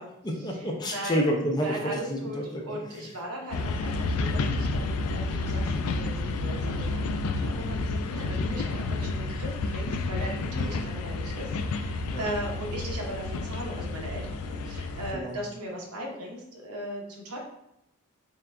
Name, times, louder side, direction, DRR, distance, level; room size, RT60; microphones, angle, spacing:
voice 1, 0.2-3.1 10.6-10.8 12.1-12.2 15.1-15.4, equal, 20° left, 1 dB, 0.4 m, -30 dB
voice 2, 0.8-1.2 1.6-17.4, right 1 dB, 90° right, -1 dB, 0.9 m, -38 dB
sound 1, 3.5-15.1, left 3 dB, 85° left, 0.3 m, -30 dB
3.8 x 3.5 x 2.2 m, 0.82 s
head